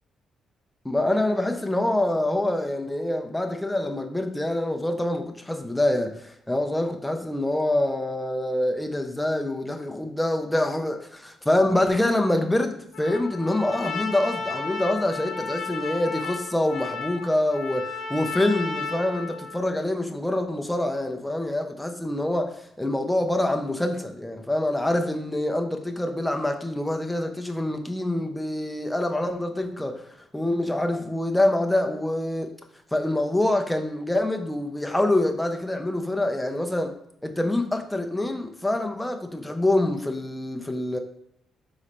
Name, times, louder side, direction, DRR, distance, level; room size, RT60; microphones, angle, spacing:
voice 1, 0.8-32.6 32.9-36.9 37.2-41.0, left 1 dB, 5° left, 4 dB, 0.6 m, -25 dB
Trumpet, 12.9-19.7, left 4 dB, 80° left, 0.8 m, -34 dB
4.2 x 3.8 x 3.1 m, 0.74 s
cardioid pair, 90°, 0 cm